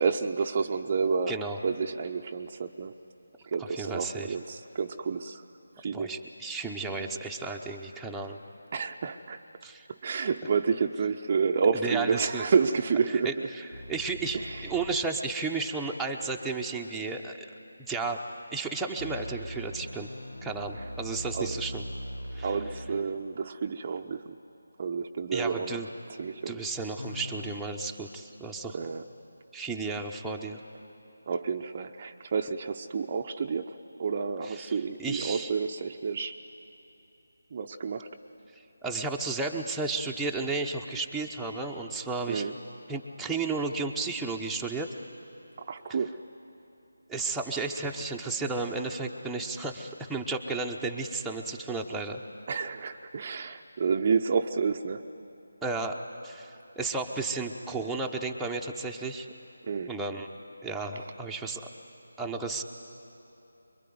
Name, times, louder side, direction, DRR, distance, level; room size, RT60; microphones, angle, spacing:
voice 1, 0.0-1.4 1.6-2.9 3.5-5.4 5.8-6.1 8.7-9.4 10.0-13.5 14.3-14.6 21.3-21.5 22.4-24.4 24.8-25.8 26.2-26.6 28.7-29.0 31.3-36.3 37.5-38.1 42.3-42.5 45.6-46.2 52.5-55.0 59.6-59.9, right 5 dB, 35° right, 6 dB, 0.7 m, -29 dB
voice 2, 1.3-1.6 3.6-4.3 5.9-8.4 9.6-9.9 11.7-12.4 13.1-17.5 17.8-18.2 18.5-20.1 20.4-21.8 22.3-22.6 25.3-25.9 26.5-28.8 29.5-30.6 34.4-35.5 38.5-42.5 42.9-44.9 47.1-52.2 55.6-59.3 59.9-60.3 60.6-61.7 62.2-62.6, right 3 dB, 5° right, -2 dB, 0.9 m, -33 dB
sound 1, 13.7-15.1 19.0-23.1 26.9-27.6, equal, 70° left, 0.9 m, -40 dB
25.0 x 23.0 x 9.5 m, 3.0 s
figure-of-eight pair, 155°, 0 cm